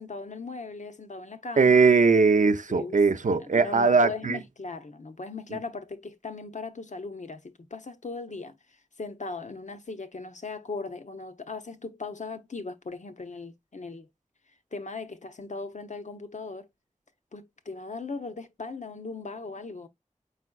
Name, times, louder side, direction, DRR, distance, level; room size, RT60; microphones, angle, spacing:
voice 1, 0.0-1.9 2.7-3.0 3.3-8.6 9.0-14.1 14.7-16.7 17.3-19.9, left 3 dB, 70° left, 0.7 m, -38 dB
voice 2, 1.6-4.4, right 4 dB, 90° right, 0.5 m, -20 dB
5.0 x 4.6 x 2.3 m
wide cardioid pair, 40°, 13 cm